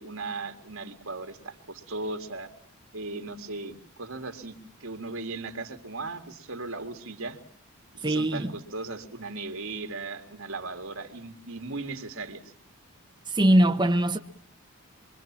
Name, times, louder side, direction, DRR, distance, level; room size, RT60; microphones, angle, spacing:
voice 1, 0.0-2.5 2.9-7.4 7.9-12.5, right 3 dB, 80° right, 2.3 m, -37 dB
voice 2, 8.0-8.5 13.3-14.2, right 1 dB, 20° right, 1.1 m, -21 dB
26.0 x 24.0 x 7.4 m
head